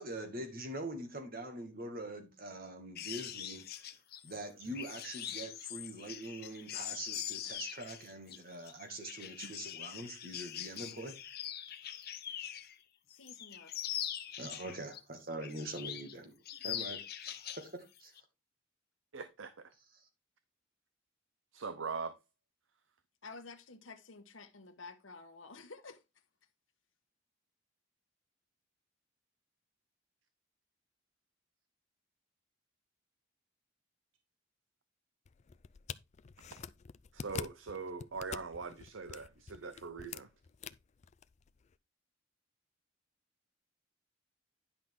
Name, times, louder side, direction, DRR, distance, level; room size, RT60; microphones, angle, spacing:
voice 1, 0.0-3.6 4.2-11.2 11.9-12.0 14.4-16.4 16.6-17.0 17.4-18.1 20.0-20.1, right 1 dB, 50° right, 2.1 m, -43 dB
sound 1, 2.9-12.8 13.1-15.0 15.4-16.1 16.4-17.7 18.0-18.2, left 11 dB, 55° left, 0.8 m, -43 dB
voice 2, 13.1-13.8 23.2-26.0, left 3 dB, 90° left, 1.1 m, -51 dB
voice 3, 19.1-19.7 21.5-22.1 37.1-40.3, right 4 dB, 80° right, 0.7 m, -42 dB
sound 2, 35.3-41.8, left 6 dB, 35° left, 0.4 m, -47 dB
10.5 x 6.0 x 3.7 m
head